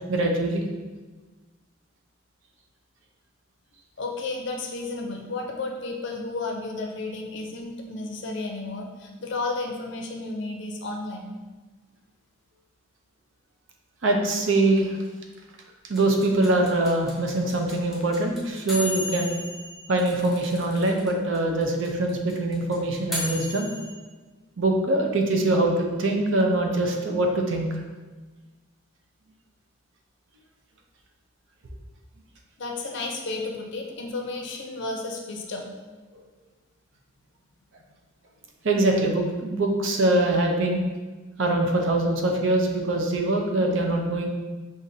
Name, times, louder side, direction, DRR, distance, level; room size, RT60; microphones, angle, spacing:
voice 1, 0.1-0.6 14.0-14.9 15.9-19.3 19.9-23.7 24.6-27.7 38.6-40.8 41.4-44.3, right 2 dB, 65° right, 2 dB, 0.6 m, -23 dB
voice 2, 4.0-11.3 32.6-35.7, left 3 dB, 60° left, 1 dB, 0.5 m, -32 dB
sound 1, 15.9-21.1 21.3-21.4 21.6-23.9, left 2 dB, ahead, 0.7 m, -34 dB
5.5 x 2.5 x 2.7 m, 1.3 s
head